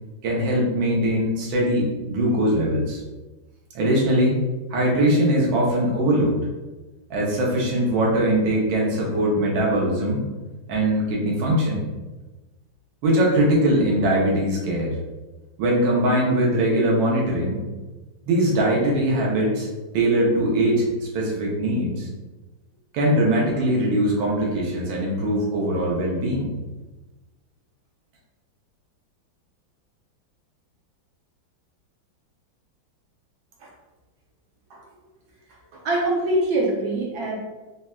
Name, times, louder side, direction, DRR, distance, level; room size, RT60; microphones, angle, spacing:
voice 1, 0.2-3.0 3.7-4.4 4.7-6.5 7.1-10.2 10.7-11.8 13.0-15.0 15.6-17.6 18.3-19.7 19.9-22.1 22.9-26.5, right 1 dB, 80° right, -3 dB, 1.5 m, -21 dB
voice 2, 35.7-37.4, right 1 dB, 65° right, -2 dB, 1.1 m, -24 dB
3.9 x 2.1 x 2.3 m, 1.2 s
omnidirectional pair, 2.1 m